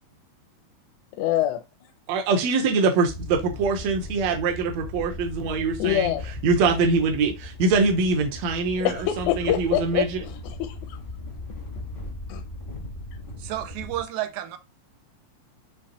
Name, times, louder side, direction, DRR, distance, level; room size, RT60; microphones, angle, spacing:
voice 1, 1.2-1.6 5.8-6.3 8.8-11.0 12.3-12.4, left 12 dB, 85° left, 1.9 m, -25 dB
voice 2, 2.1-6.1 6.4-10.2, right 4 dB, 75° right, 1.9 m, -23 dB
sound 1, 3.1-14.0, left 2 dB, 55° left, 0.5 m, -38 dB
voice 3, 13.4-14.6, right 13 dB, 90° right, 2.0 m, -31 dB
5.9 x 3.0 x 2.9 m
omnidirectional pair, 3.3 m